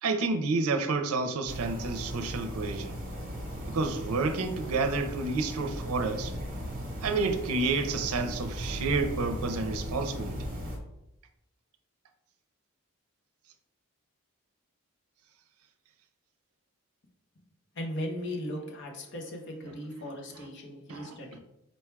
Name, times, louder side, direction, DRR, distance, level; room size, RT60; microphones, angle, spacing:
voice 1, 0.0-3.0 3.7-6.3 7.0-10.5 20.9-21.1, right 3 dB, 80° right, 6 dB, 0.5 m, -30 dB
sound 1, 1.5-10.8, equal, 40° right, 0.9 m, -37 dB
voice 2, 17.8-21.4, left 1 dB, 55° left, 1 dB, 0.8 m, -37 dB
4.2 x 2.2 x 4.5 m, 0.85 s
head